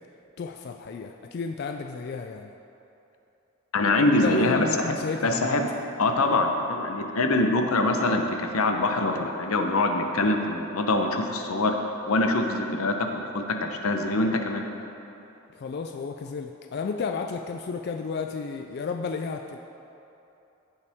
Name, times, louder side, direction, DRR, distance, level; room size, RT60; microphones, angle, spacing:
voice 1, 0.4-2.5 4.2-5.6 15.5-19.6, left 5 dB, 50° left, 4 dB, 0.3 m, -32 dB
voice 2, 3.7-4.7 5.2-5.7 6.0-11.7 12.1-13.1 13.3-14.6, left 2 dB, 90° left, 4 dB, 0.8 m, -24 dB
15.5 x 5.6 x 3.5 m, 2.9 s
head